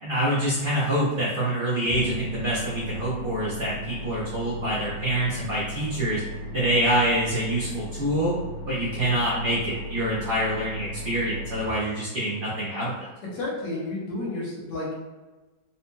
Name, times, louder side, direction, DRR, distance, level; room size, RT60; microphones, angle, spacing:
voice 1, 0.0-6.2 6.5-8.4 8.7-13.1, right 1 dB, 50° right, -8 dB, 0.6 m, -26 dB
Bass guitar, 1.8-8.1, left 3 dB, 85° right, 1.3 m, -43 dB
sound 1, 1.9-11.7, equal, 20° right, 1.2 m, -37 dB
voice 2, 13.2-15.0, left 2 dB, 80° left, -4 dB, 1.6 m, -31 dB
4.1 x 2.7 x 2.2 m, 1.2 s
omnidirectional pair, 1.9 m